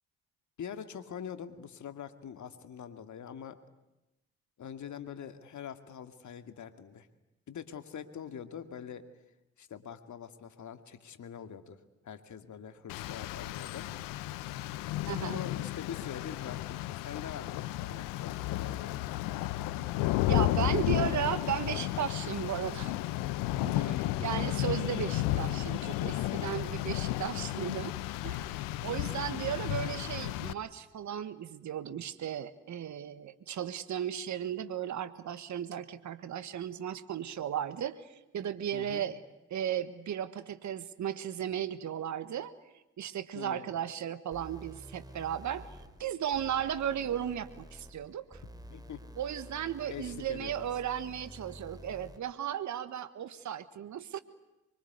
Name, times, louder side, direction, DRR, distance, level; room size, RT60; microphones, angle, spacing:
voice 1, 0.6-3.6 4.6-7.1 7.5-9.0 9.6-13.9 15.2-19.0 23.6-24.0 26.3-26.5 29.1-29.4 38.7-39.0 43.3-43.7 48.7-49.0 49.9-50.7, left 8 dB, 60° left, 8 dB, 2.3 m, -44 dB
Rain, 12.9-30.5, left 15 dB, 80° left, 0.9 m, -33 dB
voice 2, 15.1-15.4 20.3-22.9 23.6-23.9 24.2-27.9 28.2-38.0 38.3-39.2 39.5-42.5 43.0-45.7 46.0-48.4 49.2-54.2, right 9 dB, 60° right, 12 dB, 1.5 m, -35 dB
sound 1, 44.3-52.3, equal, 10° right, 4.0 m, -50 dB
24.5 x 24.0 x 9.6 m, 0.95 s
hypercardioid pair, 45°, 33 cm